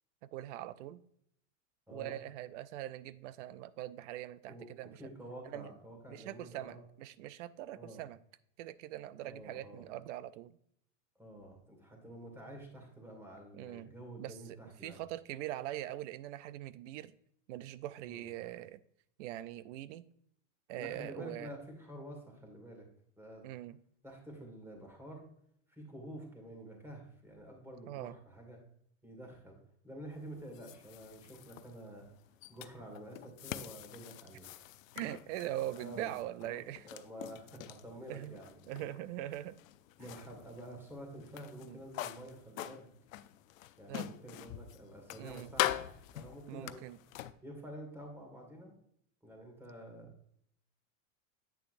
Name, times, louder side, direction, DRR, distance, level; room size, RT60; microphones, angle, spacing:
voice 1, 0.3-1.0 1.9-5.0 5.5-5.7 6.1-8.2 8.6-10.6 13.5-13.9 14.2-14.4 14.8-17.1 17.5-18.8 19.2-20.0 20.7-21.5 23.4-23.8 27.9-28.2 34.9-36.8 38.1-38.4 38.7-39.6 41.6-41.8 43.9-44.1 45.2-45.6 46.5-47.0, right 14 dB, 65° right, 17 dB, 0.6 m, -42 dB
voice 2, 1.9-2.2 4.5-4.7 5.0-6.8 7.8-8.0 9.2-9.9 11.2-15.0 18.0-18.3 20.8-22.9 23.2-23.4 24.0-25.3 25.7-28.6 29.0-29.6 29.8-32.1 32.5-34.5 35.7-36.1 36.4-38.9 40.0-42.9 43.8-45.8 46.1-46.9 47.4-48.7 49.2-50.1, right 1 dB, 5° right, 1 dB, 2.2 m, -49 dB
sound 1, 30.1-47.3, left 14 dB, 90° left, 0.6 m, -44 dB
8.4 x 6.7 x 2.6 m, 0.68 s
supercardioid pair, 135°, 39 cm